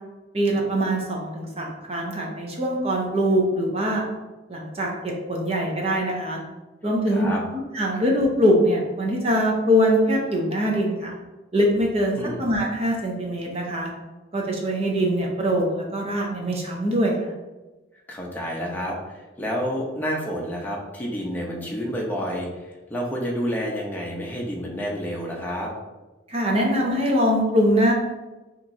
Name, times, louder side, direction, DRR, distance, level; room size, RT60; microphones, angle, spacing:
voice 1, 0.3-4.0 4.5-6.4 6.8-7.3 7.5-11.1 11.5-13.9 14.3-17.2 26.3-27.9, equal, 30° right, -1 dB, 0.7 m, -23 dB
voice 2, 7.1-7.4 12.1-12.4 18.1-25.7, equal, 10° left, -2 dB, 0.7 m, -29 dB
5.9 x 3.0 x 2.7 m, 1.1 s
head